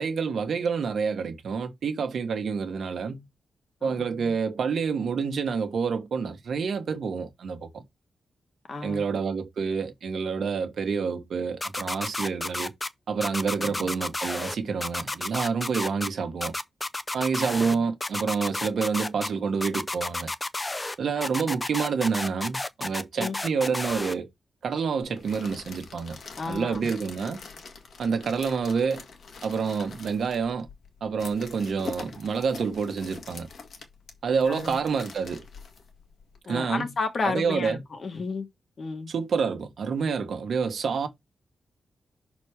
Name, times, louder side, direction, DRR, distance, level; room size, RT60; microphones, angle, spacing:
voice 1, 0.0-3.3 3.8-7.8 8.8-12.7 13.1-16.5 17.1-20.3 21.0-24.3 24.6-26.2 26.5-27.4 28.0-29.0 29.4-30.7 31.0-33.5 34.2-35.4 36.5-36.9 37.2-37.8 39.1-41.1, right 5 dB, 65° right, 1.3 m, -28 dB
voice 2, 3.8-4.3 8.7-9.1 13.6-14.0 17.5-17.7 21.2-21.5 23.2-23.4 26.4-26.9 34.5-34.8 36.5-38.5 38.8-39.1, left 4 dB, 40° left, 1.4 m, -33 dB
sound 1, 11.6-12.9 13.2-14.5 14.8-16.1 16.4-17.8 18.0-19.3 19.6-20.9 21.2-24.1, left 2 dB, 15° left, 0.5 m, -31 dB
sound 2, 25.0-36.4, left 5 dB, 60° left, 1.7 m, -44 dB
6.1 x 4.2 x 4.8 m
wide cardioid pair, 160°, 0 cm